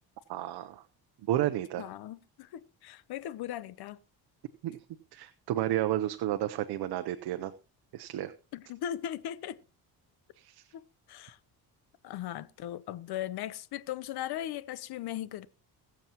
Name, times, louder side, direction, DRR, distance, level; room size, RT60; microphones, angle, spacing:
voice 1, 0.3-0.8 1.3-1.8 4.6-4.8 5.1-7.5 7.9-8.3 10.4-10.7, right 13 dB, 80° right, 0.8 m, -31 dB
voice 2, 1.8-4.0 8.5-9.6 10.7-10.8 11.1-11.4 12.0-15.5, left 11 dB, 70° left, 0.8 m, -38 dB
21.5 x 7.3 x 2.9 m
cardioid pair, 115°, 39 cm